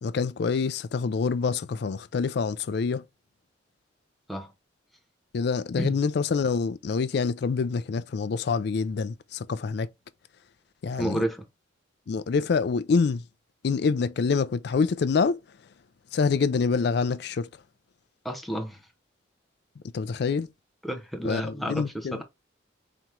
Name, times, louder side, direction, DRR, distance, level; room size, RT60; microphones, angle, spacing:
voice 1, 0.0-3.0 5.3-9.9 10.8-11.2 12.1-13.2 13.6-15.4 16.1-17.5 19.9-20.5 21.2-22.2, left 5 dB, 55° left, 0.4 m, -26 dB
voice 2, 11.0-11.5 18.2-18.8 20.8-22.2, equal, ahead, 0.7 m, -31 dB
4.3 x 3.0 x 3.6 m
head